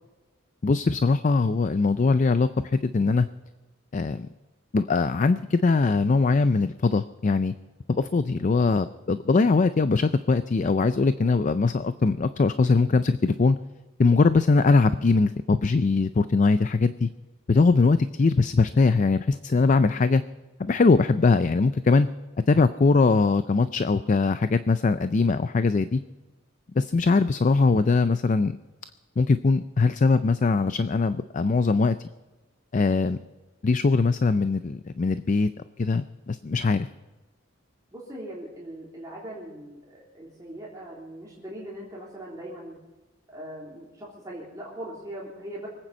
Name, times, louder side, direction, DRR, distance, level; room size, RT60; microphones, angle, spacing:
voice 1, 0.6-3.3 3.9-4.3 4.7-7.5 7.9-13.6 14.0-17.1 17.5-20.2 20.6-22.1 22.5-26.0 26.8-28.6 29.2-32.0 32.7-33.2 33.6-35.5 35.8-36.9, left 3 dB, 40° left, 12 dB, 0.4 m, -21 dB
voice 2, 37.9-42.8 43.3-45.7, right 1 dB, 20° right, -6 dB, 3.3 m, -40 dB
24.0 x 8.9 x 5.4 m, 1.2 s
head